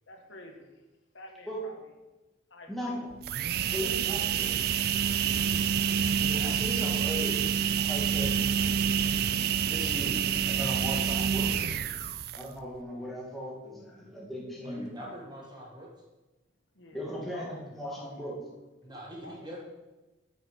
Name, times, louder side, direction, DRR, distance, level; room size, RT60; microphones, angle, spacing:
voice 1, 0.1-0.8 1.1-1.8 2.5-3.0 16.7-17.6 19.2-19.4, left 2 dB, 75° left, 2 dB, 1.4 m, -49 dB
voice 2, 2.7-3.1 3.7-4.7 6.2-8.4 9.3-11.5 12.4-14.9 16.9-18.4, equal, ahead, -5 dB, 2.1 m, -38 dB
sound 1, 3.1-12.6, right 8 dB, 50° right, 0.4 m, -28 dB
voice 3, 14.6-15.9 18.8-19.6, equal, 20° right, -2 dB, 1.8 m, -43 dB
9.1 x 6.5 x 5.3 m, 1.1 s
head